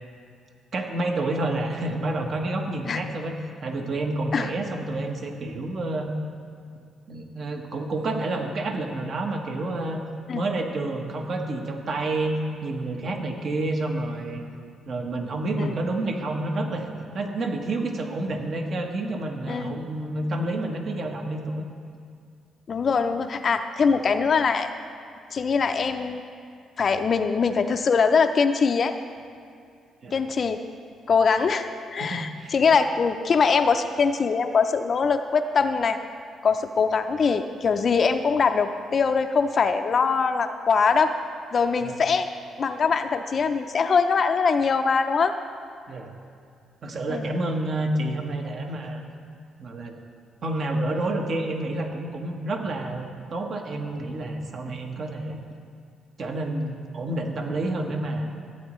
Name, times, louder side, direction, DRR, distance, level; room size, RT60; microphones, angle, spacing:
voice 1, 0.7-3.3 3.6-6.1 7.1-10.0 10.3-12.3 12.6-14.4 14.8-16.9 17.1-21.6 30.0-30.2 32.0-32.5 41.8-42.0 45.9-46.1 46.8-49.0 49.6-50.0 50.4-55.4 56.2-58.3, right 2 dB, 55° right, 3 dB, 1.1 m, -29 dB
voice 2, 19.5-19.8 22.7-24.7 25.3-26.2 26.8-29.0 30.1-30.6 31.1-36.0 36.4-41.2 41.5-42.3 42.6-45.3 47.1-47.2, left 5 dB, 45° left, 7 dB, 0.4 m, -22 dB
15.0 x 8.7 x 3.1 m, 2.3 s
cardioid pair, 90°, 0 cm